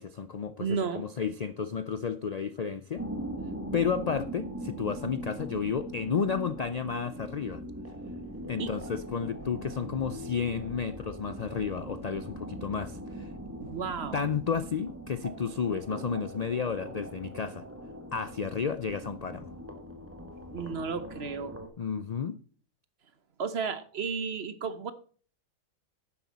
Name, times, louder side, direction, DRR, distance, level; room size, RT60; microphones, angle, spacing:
voice 1, 0.0-3.0 3.7-7.6 8.5-13.3 14.1-17.6 18.1-19.5 21.8-22.4, left 6 dB, 60° left, 12 dB, 0.4 m, -32 dB
voice 2, 0.6-1.0 8.6-8.7 13.6-14.2 20.5-21.6 23.4-24.9, right 5 dB, 50° right, 12 dB, 1.1 m, -33 dB
sound 1, 2.9-21.7, right 1 dB, 10° right, 1.5 m, -41 dB
11.0 x 10.5 x 4.1 m, 0.43 s
omnidirectional pair, 1.4 m